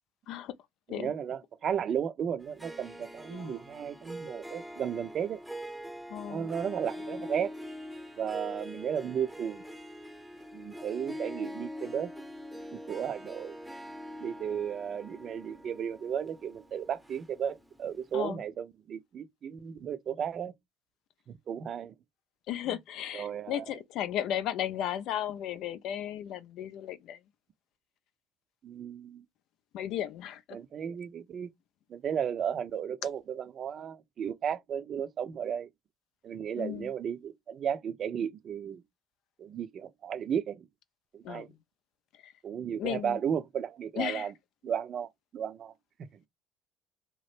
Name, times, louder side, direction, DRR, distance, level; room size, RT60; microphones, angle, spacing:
voice 1, 0.9-5.4 6.3-7.5 8.2-9.6 10.5-12.1 12.7-13.6 14.2-20.5 21.3-21.9 22.7-22.8 23.1-23.6 28.6-29.2 30.5-31.5 31.9-35.7 36.2-38.8 39.4-40.7 41.1-41.5 42.4-44.3 44.6-45.7 46.1-46.2, right 8 dB, 50° right, 0.5 m, -34 dB
Harp, 2.4-17.8, equal, ahead, 0.7 m, -44 dB
voice 2, 3.3-3.6 6.1-6.5 18.1-18.4 22.5-27.2 29.7-30.6 36.6-36.9 41.2-41.6 42.2-42.3 42.8-43.2 44.0-44.3, left 11 dB, 65° left, 0.4 m, -35 dB
2.9 x 2.0 x 3.2 m
hypercardioid pair, 65°, 0 cm